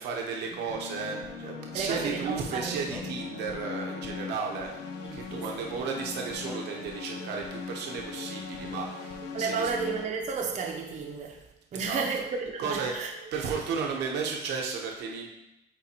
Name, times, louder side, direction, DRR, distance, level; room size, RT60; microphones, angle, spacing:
voice 1, 0.0-4.7 5.1-9.7 11.7-12.0 12.6-12.9 13.3-15.3, right 5 dB, 80° right, 1.0 m, -34 dB
sound 1, 0.7-10.1, left 5 dB, 80° left, 0.7 m, -39 dB
voice 2, 1.7-2.9 5.0-5.7 8.6-8.8 9.3-11.4 11.7-13.1, right 5 dB, 45° right, 0.8 m, -33 dB
Male speech man speaking, 2.4-3.3 5.8-6.6, right 2 dB, 5° right, 1.0 m, -47 dB
Telephone, 6.7-7.2 7.7-8.2 8.7-9.2 9.7-10.2 10.7-11.2 11.7-12.3 12.7-13.3 13.8-14.3, right 1 dB, 60° left, 2.1 m, -50 dB
9.0 x 3.9 x 2.9 m
cardioid pair, 110°, 17 cm